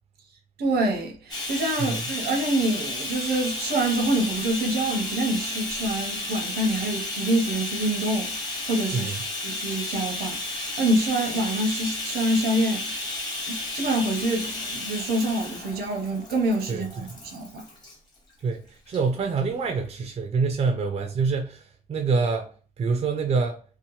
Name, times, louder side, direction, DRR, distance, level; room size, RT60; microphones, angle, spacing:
voice 1, 0.6-9.1 9.4-12.9 13.5-17.6, right 1 dB, 85° right, 0.7 m, -26 dB
Bathtub (filling or washing), 1.3-17.9 18.9-19.0 19.4-19.5, left 2 dB, 25° left, 1.1 m, -33 dB
voice 2, 16.7-17.1 18.4-18.6 18.9-21.6 21.9-22.5 22.8-23.6, right 4 dB, 45° right, 0.4 m, -25 dB
2.8 x 2.1 x 2.9 m
cardioid pair, 135°, 16 cm